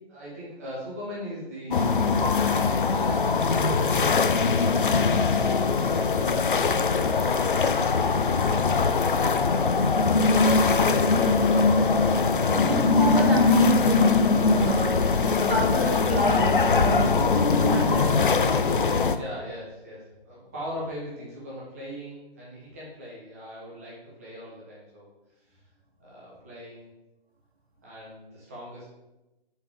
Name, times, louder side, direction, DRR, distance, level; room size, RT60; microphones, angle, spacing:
voice 1, 0.0-5.0 19.1-25.1 25.5-25.6 26.0-26.9 27.8-28.9, equal, 15° right, -7 dB, 0.8 m, -41 dB
sound 1, 1.7-19.2, left 4 dB, 55° left, 0.4 m, -22 dB
voice 2, 11.8-18.3, right 1 dB, 80° right, -1 dB, 1.9 m, -30 dB
6.7 x 4.5 x 3.4 m, 1.0 s
figure-of-eight pair, 155°, 31 cm